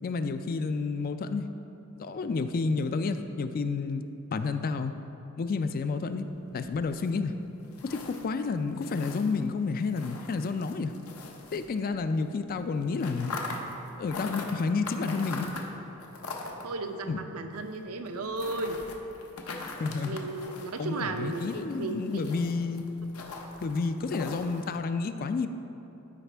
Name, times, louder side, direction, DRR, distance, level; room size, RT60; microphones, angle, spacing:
voice 1, 0.0-1.5 2.0-4.0 4.3-4.9 5.4-7.3 7.8-10.9 11.5-13.3 14.0-15.5 17.1-17.2 19.8-20.2 20.8-22.8 23.6-25.5, left 4 dB, 40° left, 9 dB, 0.3 m, -30 dB
sound 1, 6.2-12.2 12.5-24.8, left 2 dB, 80° left, 0.8 m, -43 dB
voice 2, 16.6-18.8 20.0-21.5 21.8-22.2, right 3 dB, 80° right, 6 dB, 0.6 m, -34 dB
12.5 x 5.0 x 3.4 m, 3.0 s
head